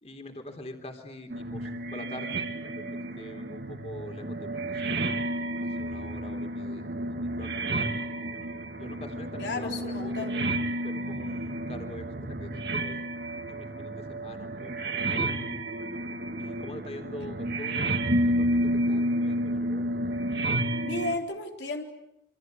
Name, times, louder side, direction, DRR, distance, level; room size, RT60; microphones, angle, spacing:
voice 1, 0.0-5.0 5.6-7.6 8.8-10.6 10.8-13.1 13.5-15.4 16.4-17.9 18.4-20.0, left 1 dB, 35° left, 5 dB, 3.5 m, -44 dB
sound 1, 1.3-21.2, right 1 dB, 70° right, 2.8 m, -31 dB
voice 2, 9.4-10.3 20.8-21.8, left 2 dB, 90° left, 3 dB, 4.0 m, -33 dB
28.0 x 26.0 x 8.2 m, 0.84 s
head